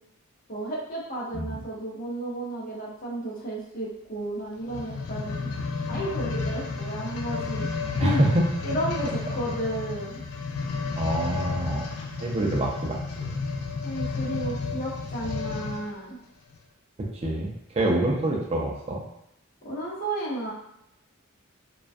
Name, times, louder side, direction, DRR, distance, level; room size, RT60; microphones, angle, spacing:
voice 1, 0.5-5.5 5.8-7.7 8.0-8.2 8.6-10.2 13.8-16.2 19.6-20.5, right 1 dB, 40° left, -5 dB, 0.7 m, -33 dB
sound 1, 4.6-15.9 16.6-16.7, left 4 dB, 80° left, 0.3 m, -32 dB
voice 2, 8.0-8.3 11.0-11.9 12.2-13.3 17.0-19.0, right 1 dB, 30° right, -1 dB, 0.4 m, -27 dB
2.3 x 2.2 x 2.5 m, 0.81 s
head